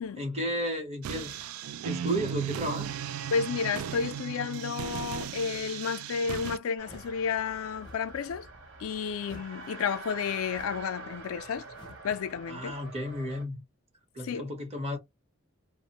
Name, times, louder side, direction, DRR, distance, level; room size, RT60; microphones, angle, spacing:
voice 1, 0.2-1.3 1.8-2.9 12.5-13.6 14.1-15.0, equal, 30° right, 0.8 m, -33 dB
sound 1, 1.0-6.6, right 9 dB, 85° right, 0.3 m, -36 dB
voice 2, 3.3-8.5 8.8-11.7 12.0-12.7 14.2-14.5, left 6 dB, 80° left, 0.4 m, -31 dB
sound 2, 6.8-7.2 7.7-8.1 9.2-9.6 10.5-10.9 11.7-12.1, left 1 dB, 20° left, 0.5 m, -51 dB
sound 3, 6.8-13.4, right 3 dB, 60° right, 0.8 m, -46 dB
2.5 x 2.1 x 2.8 m
head